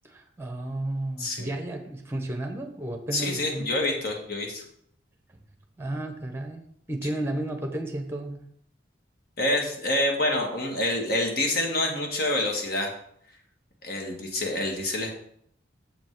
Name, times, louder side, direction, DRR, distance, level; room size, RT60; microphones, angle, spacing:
voice 1, 0.0-3.8 5.8-8.5, right 1 dB, 10° right, 5 dB, 1.0 m, -33 dB
voice 2, 3.1-4.6 9.4-12.9 13.8-15.1, left 1 dB, 50° left, 1 dB, 1.6 m, -27 dB
7.2 x 5.4 x 4.6 m, 0.68 s
head